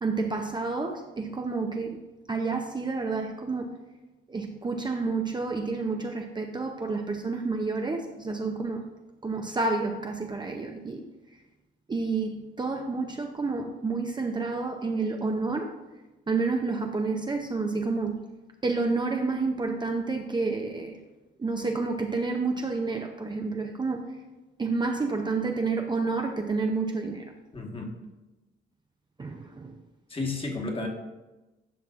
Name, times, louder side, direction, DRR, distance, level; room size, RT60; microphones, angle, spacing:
voice 1, 0.0-2.0 2.3-3.8 4.3-8.8 9.2-11.1 11.9-15.7 16.3-18.3 18.6-21.0 21.4-24.2 24.6-27.3 29.2-29.7, right 3 dB, 20° right, 3 dB, 0.6 m, -29 dB
voice 2, 27.5-27.9 30.1-30.9, left 3 dB, 25° left, 1 dB, 1.4 m, -32 dB
11.0 x 5.8 x 2.5 m, 1.1 s
cardioid pair, 90°, 20 cm